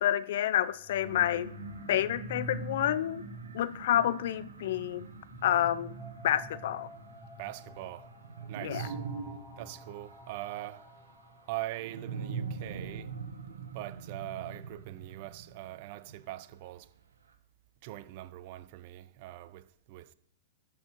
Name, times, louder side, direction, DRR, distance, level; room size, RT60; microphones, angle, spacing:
voice 1, 0.0-1.5 1.9-3.2 3.5-5.0 5.4-5.9 6.2-6.9 8.6-8.9, left 11 dB, 65° left, 0.6 m, -29 dB
sound 1, 0.7-12.6, right 1 dB, 10° left, 1.4 m, -47 dB
sound 2, 1.0-16.5, right 5 dB, 85° right, 1.6 m, -44 dB
voice 2, 7.4-8.1 8.5-9.0 9.6-10.9 11.5-13.2 13.7-16.9 17.8-20.1, right 16 dB, 50° right, 0.6 m, -42 dB
12.5 x 4.7 x 4.6 m
hypercardioid pair, 115°, 0 cm